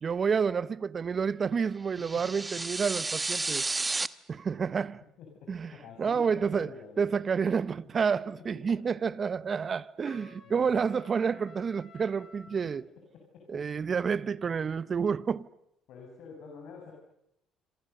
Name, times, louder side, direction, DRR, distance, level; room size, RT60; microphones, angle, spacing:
voice 1, 0.0-3.6 4.3-5.0 5.5-5.7 6.0-6.7 7.0-12.8 13.5-15.5, right 6 dB, 40° right, 0.9 m, -29 dB
sound 1, 2.0-4.1, right 3 dB, 20° right, 1.1 m, -32 dB
voice 2, 5.2-7.1 8.4-9.0 9.4-9.8 10.4-10.9 13.3-13.6 15.9-16.9, left 5 dB, 70° left, 6.3 m, -48 dB
Trumpet, 10.0-12.6, left 3 dB, 50° left, 5.4 m, -53 dB
27.0 x 27.0 x 6.8 m
supercardioid pair, 70°, 0 cm